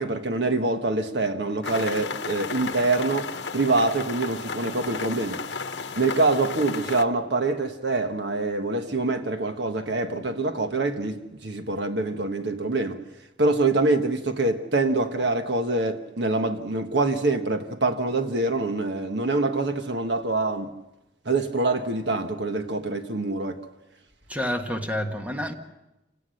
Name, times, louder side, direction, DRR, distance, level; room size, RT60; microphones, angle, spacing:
voice 1, 0.0-5.4 5.9-13.0 13.4-20.7 21.2-23.6, right 2 dB, 65° right, 1.4 m, -25 dB
sound 1, 1.6-7.0, left 4 dB, 65° left, 1.1 m, -33 dB
voice 2, 24.3-25.5, equal, 10° right, 1.6 m, -28 dB
29.0 x 17.5 x 6.5 m
head